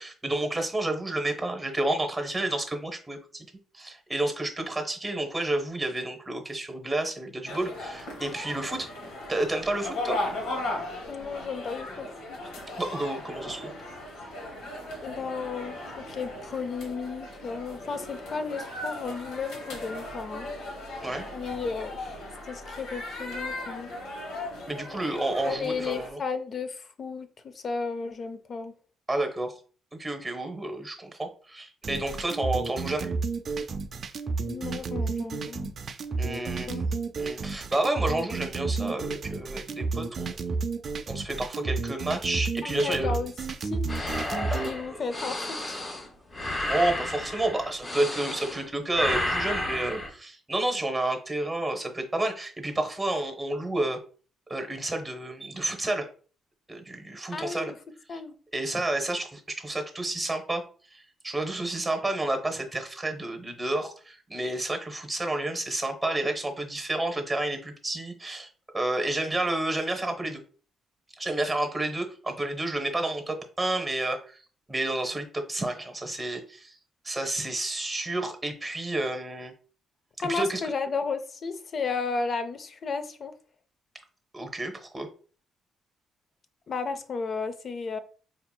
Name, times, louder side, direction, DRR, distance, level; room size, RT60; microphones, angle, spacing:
voice 1, 0.0-3.4 3.7-8.9 9.3-10.2 12.8-13.7 21.0-21.3 24.7-26.2 29.1-29.5 30.0-33.1 36.2-36.8 37.2-40.4 41.1-43.1 44.5-45.0 46.5-54.0 54.5-56.1 56.7-57.7 58.1-58.2 58.5-60.6 60.9-68.5 68.7-70.4 71.2-74.4 74.7-76.7 77.0-79.5 80.2-80.7 84.3-85.1, right 2 dB, 15° right, 0.8 m, -30 dB
sound 1, 7.5-26.1, left 1 dB, 85° left, 0.9 m, -37 dB
voice 2, 11.1-12.4 15.0-20.5 21.3-22.2 22.5-23.9 25.4-28.7 34.5-35.7 36.4-36.8 42.6-43.3 43.6-43.8 44.6-45.8 57.3-57.7 58.1-58.3 80.2-83.3 86.7-88.0, left 4 dB, 50° left, 0.5 m, -33 dB
sound 2, 31.8-44.7, right 4 dB, 50° right, 0.4 m, -31 dB
sound 3, 43.9-48.6 48.9-50.1, left 1 dB, 35° left, 0.9 m, -32 dB
4.3 x 2.8 x 2.2 m
cardioid pair, 90°, 0 cm